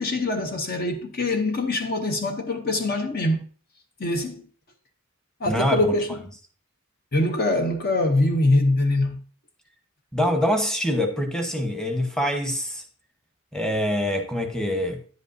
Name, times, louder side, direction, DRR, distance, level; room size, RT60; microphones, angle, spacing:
voice 1, 0.0-3.5 4.0-4.5 5.4-6.2 7.1-9.2, left 2 dB, 45° left, 0.8 m, -23 dB
voice 2, 5.5-5.9 10.1-12.8 13.5-15.0, equal, 5° left, 1.0 m, -25 dB
10.0 x 8.2 x 2.6 m
head